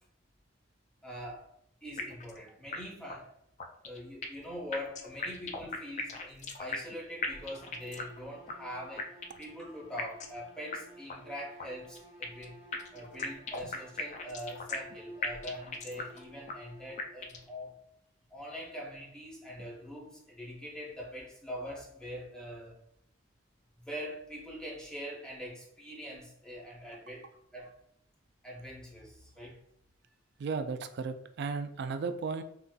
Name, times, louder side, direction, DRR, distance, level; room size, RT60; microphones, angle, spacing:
voice 1, 1.0-1.4 1.8-3.3 3.8-9.1 9.4-12.6 12.9-17.8 18.3-22.8 23.8-27.7 28.4-29.6, equal, 5° left, -4 dB, 0.8 m, -43 dB
sound 1, 2.0-2.4 2.7-2.8 3.1-3.2 3.6-4.5 4.7-7.0 7.2-8.2 8.5-8.6 9.0-9.5 10.0-10.4 10.7-10.8 11.1-11.2 11.6-12.5 12.7-15.0 15.2-16.2 16.5-16.6 17.0-17.5, left 4 dB, 40° left, 0.3 m, -38 dB
sound 2, 7.2-17.4, equal, 80° left, 1.0 m, -55 dB
voice 2, 30.4-32.4, right 4 dB, 60° right, 9 dB, 0.3 m, -35 dB
3.8 x 2.4 x 2.3 m, 0.75 s
head